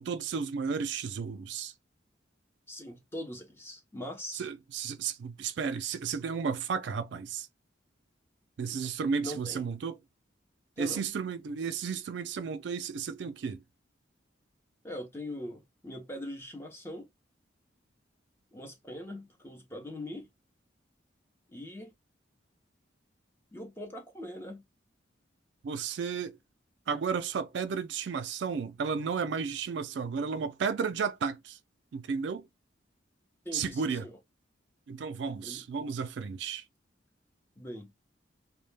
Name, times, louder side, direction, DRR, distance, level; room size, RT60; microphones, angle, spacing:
voice 1, 0.0-1.7 4.3-7.5 8.6-10.0 10.8-13.6 25.6-26.4 26.9-31.6 31.9-32.5 33.5-34.1 34.9-36.6, right 6 dB, 70° right, 0.4 m, -33 dB
voice 2, 2.7-4.5 9.2-9.7 10.8-11.1 14.8-17.1 18.5-20.3 21.5-21.9 23.5-24.6 33.4-34.2 35.4-35.6 37.6-37.9, left 1 dB, 15° left, 0.6 m, -41 dB
2.2 x 2.1 x 3.1 m
head